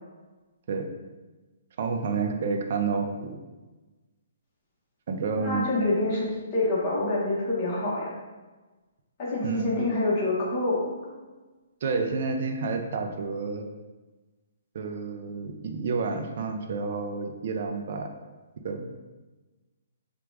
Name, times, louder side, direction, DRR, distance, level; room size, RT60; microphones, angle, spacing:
voice 1, 1.8-3.4 5.1-5.7 9.4-9.8 11.8-13.7 14.7-18.1 18.6-18.9, right 4 dB, 50° right, 4 dB, 0.5 m, -29 dB
voice 2, 5.4-8.1 9.2-11.1, left 2 dB, 30° left, -6 dB, 1.3 m, -27 dB
4.7 x 2.4 x 3.5 m, 1.2 s
hypercardioid pair, 155°, 0 cm